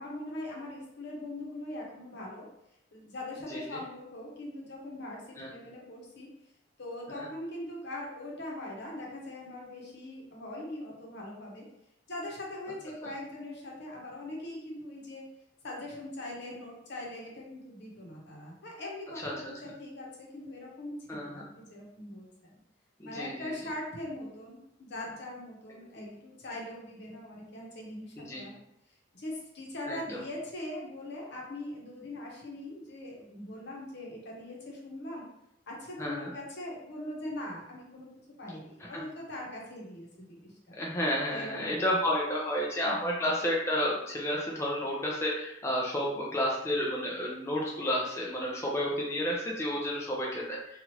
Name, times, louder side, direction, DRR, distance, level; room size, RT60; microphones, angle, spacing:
voice 1, 0.0-2.5 2.9-6.3 6.8-11.6 12.1-15.2 15.6-22.6 23.0-28.6 29.1-35.2 35.7-38.1 38.4-40.8 41.3-42.0 42.8-43.2, left 1 dB, 65° left, -2 dB, 0.9 m, -41 dB
voice 2, 21.1-21.4 23.0-23.5 28.2-28.4 29.9-30.2 36.0-36.3 38.8-38.9 40.7-50.8, equal, 15° left, -4 dB, 0.4 m, -31 dB
2.9 x 2.4 x 2.9 m, 0.78 s
head